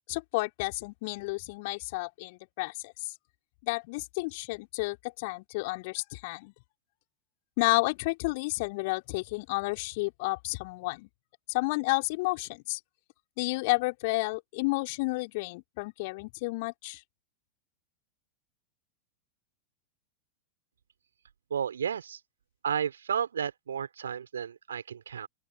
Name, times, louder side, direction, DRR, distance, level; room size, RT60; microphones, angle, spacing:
voice 1, 0.1-3.1 3.6-6.5 7.6-11.1 11.5-12.8 13.4-17.0, left 25 dB, 50° left, 4.1 m, -31 dB
voice 2, 21.5-22.2 22.6-25.3, right 8 dB, 70° right, 4.6 m, -32 dB
open air
figure-of-eight pair, 90°, 0 cm